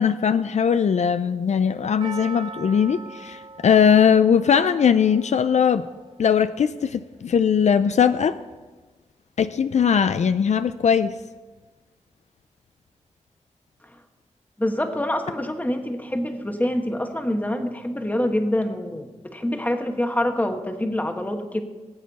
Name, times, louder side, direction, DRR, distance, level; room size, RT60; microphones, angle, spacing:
voice 1, 0.0-5.9 6.2-8.3 9.4-11.2, left 7 dB, 70° left, 11 dB, 0.4 m, -20 dB
Percussion, 2.0-6.4 6.6-6.7, right 4 dB, 40° right, 0.8 m, -41 dB
voice 2, 14.6-21.6, left 1 dB, 15° left, 5 dB, 1.2 m, -26 dB
17.5 x 8.3 x 4.1 m, 1.3 s
wide cardioid pair, 90°, 12 cm